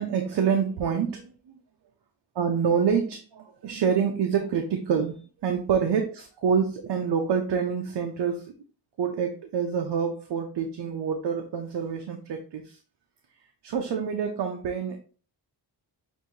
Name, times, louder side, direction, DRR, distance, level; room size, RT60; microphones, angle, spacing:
voice 1, 0.0-1.6 2.4-8.5 9.0-12.8 13.6-15.0, right 7 dB, 75° right, 4 dB, 0.7 m, -27 dB
6.1 x 2.7 x 2.8 m, 0.38 s
wide cardioid pair, 175°, 42 cm